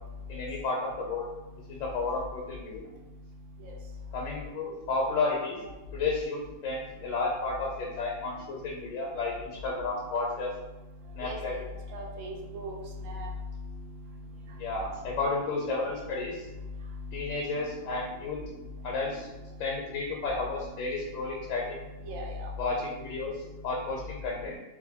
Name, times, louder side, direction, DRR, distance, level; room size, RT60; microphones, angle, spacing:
voice 1, 0.3-1.2 1.7-2.8 4.1-5.6 5.9-10.5 11.2-11.6 14.5-16.5 17.1-18.4 18.8-19.3 19.6-21.8 22.6-24.6, left 3 dB, 75° left, -2 dB, 0.9 m, -32 dB
voice 2, 11.2-11.6 11.9-12.7 13.0-13.3 15.6-15.7 22.1-22.5, equal, 85° right, 0 dB, 1.0 m, -38 dB
2.6 x 2.5 x 2.7 m, 1.1 s
omnidirectional pair, 1.4 m